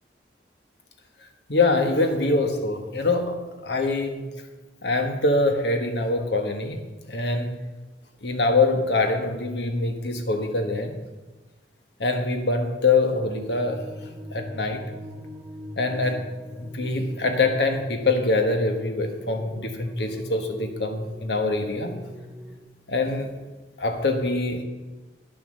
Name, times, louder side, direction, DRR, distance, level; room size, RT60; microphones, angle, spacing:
voice 1, 1.5-4.2 4.8-6.8 7.1-7.6 8.2-11.0 12.0-13.8 14.3-14.8 15.7-16.3 16.6-21.9 22.9-23.3 23.8-24.6, left 3 dB, 70° left, 5 dB, 1.4 m, -24 dB
sound 1, 13.5-22.6, left 1 dB, 10° right, 1.1 m, -42 dB
10.0 x 7.5 x 6.4 m, 1.2 s
head